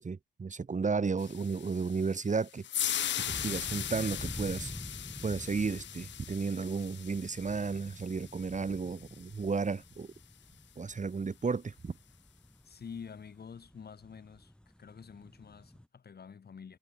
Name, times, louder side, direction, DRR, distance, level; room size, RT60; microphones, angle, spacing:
voice 1, 0.0-2.7 3.3-4.7 5.2-10.1 10.8-11.9, right 4 dB, 40° right, 2.6 m, -33 dB
sound 1, 1.2-9.5, left 11 dB, 75° left, 0.7 m, -39 dB
sound 2, 2.8-15.9, left 1 dB, 5° left, 1.8 m, -48 dB
voice 2, 12.6-14.5 14.8-16.8, left 6 dB, 55° left, 5.5 m, -48 dB
cardioid pair, 70°, 19 cm